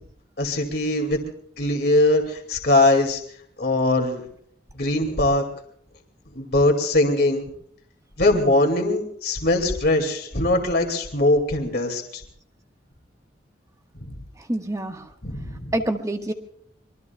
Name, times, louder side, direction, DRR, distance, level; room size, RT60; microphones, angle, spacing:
voice 1, 0.4-1.2 1.6-3.2 3.6-4.2 4.8-5.4 6.3-7.4 8.2-12.2 14.0-14.1 15.2-15.7, left 2 dB, 60° left, 3 dB, 2.3 m, -21 dB
voice 2, 14.5-15.1 15.7-16.3, right 1 dB, 20° right, 5 dB, 1.4 m, -26 dB
26.0 x 22.5 x 2.3 m, 0.64 s
head